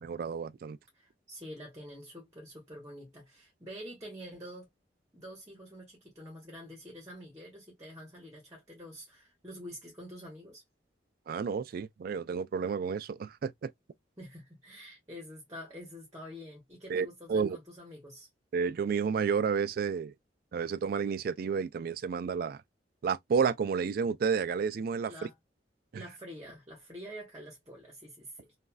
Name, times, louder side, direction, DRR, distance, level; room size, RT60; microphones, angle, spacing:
voice 1, 0.0-0.8 11.3-13.7 16.9-17.6 18.5-20.1 20.5-22.6 23.0-25.1 25.9-26.0, right 6 dB, 55° right, 0.3 m, -31 dB
voice 2, 0.9-4.7 5.1-10.6 14.2-18.3 25.1-25.4 26.0-28.6, equal, 20° right, 1.2 m, -47 dB
3.1 x 2.5 x 2.2 m
head